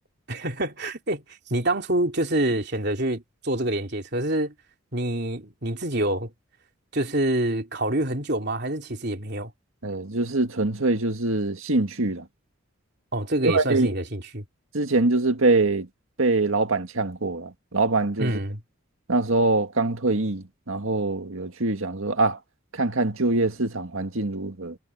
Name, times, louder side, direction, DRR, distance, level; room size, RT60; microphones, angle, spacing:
voice 1, 0.3-1.2 1.5-4.5 4.9-6.3 6.9-9.5 13.1-14.4 18.2-18.6, right 1 dB, 50° right, 3.5 m, -26 dB
voice 2, 9.8-12.2 13.4-13.9 14.7-15.9 16.2-18.4 19.1-22.4 22.7-24.8, right 2 dB, 75° right, 1.8 m, -24 dB
head